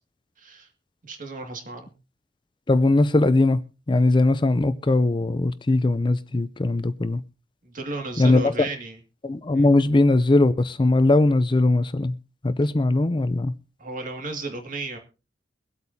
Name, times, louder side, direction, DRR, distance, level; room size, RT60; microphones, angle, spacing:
voice 1, 0.4-0.7 1.0-1.9 7.6-9.0 9.5-9.7 13.8-15.0, right 3 dB, 50° right, 2.1 m, -34 dB
voice 2, 2.7-3.6 3.9-7.2 8.2-8.5 9.2-12.1 12.4-13.5, left 2 dB, 25° left, 0.5 m, -20 dB
23.5 x 8.3 x 2.7 m
head